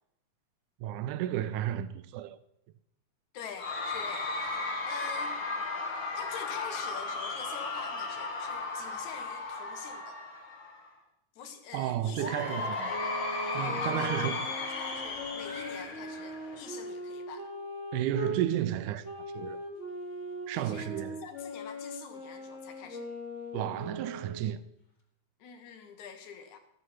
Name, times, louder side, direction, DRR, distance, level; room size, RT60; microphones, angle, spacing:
voice 1, 0.8-2.4 11.7-12.9 13.6-14.5 17.9-19.1 19.3-19.6 20.5-21.2 23.5-24.6, right 12 dB, 80° right, 2.0 m, -32 dB
voice 2, 3.3-4.6 4.8-5.4 6.1-10.2 11.4-13.2 13.5-17.5 20.5-23.1 25.4-26.6, left 7 dB, 75° left, 2.4 m, -45 dB
Cheering / Crowd, 3.6-10.9 12.2-16.9, left 3 dB, 50° left, 1.8 m, -35 dB
sound 1, 12.9-18.4 19.0-24.6, left 1 dB, 30° left, 1.6 m, -40 dB
13.0 x 8.0 x 5.7 m
omnidirectional pair, 3.6 m